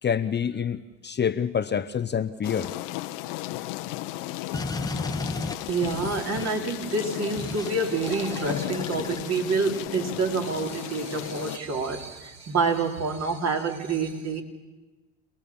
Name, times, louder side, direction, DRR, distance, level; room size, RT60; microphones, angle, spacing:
voice 1, 0.0-2.7, left 7 dB, 30° left, 11 dB, 0.8 m, -27 dB
sound 1, 2.4-11.6, left 17 dB, 75° left, 1.0 m, -35 dB
sound 2, 4.5-6.7 7.4-7.7 8.0-9.9, left 2 dB, 10° left, 1.1 m, -35 dB
voice 2, 5.7-14.4, right 4 dB, 45° right, 2 dB, 3.6 m, -27 dB
28.0 x 19.5 x 7.2 m, 1.2 s
hypercardioid pair, 75°, 37 cm